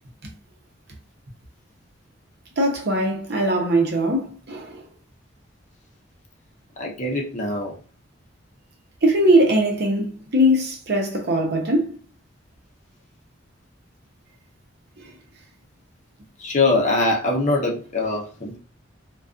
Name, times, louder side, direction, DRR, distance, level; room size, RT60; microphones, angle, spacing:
voice 1, 2.6-4.9 9.0-12.0 15.0-15.1, right 1 dB, 55° right, 0.7 m, -21 dB
voice 2, 6.8-7.7 16.4-18.6, left 2 dB, 40° left, 0.6 m, -23 dB
2.4 x 2.3 x 2.4 m
head